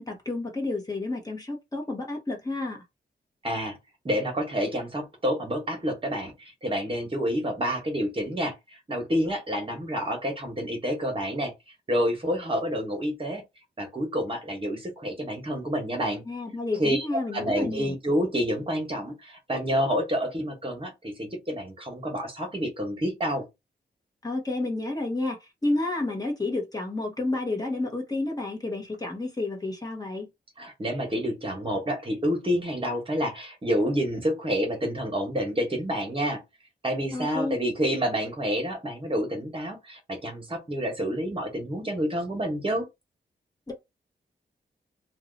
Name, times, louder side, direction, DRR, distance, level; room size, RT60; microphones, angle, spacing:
voice 1, 0.0-2.8 16.3-17.9 24.2-30.3 37.1-37.5 43.7-43.8, left 2 dB, 20° left, 1.0 m, -30 dB
voice 2, 3.4-3.8 4.0-11.5 11.9-13.4 13.8-16.2 16.7-23.5 30.6-36.4 36.8-42.9, equal, 30° right, 1.2 m, -28 dB
2.7 x 2.3 x 3.9 m
wide cardioid pair, 115°, 18 cm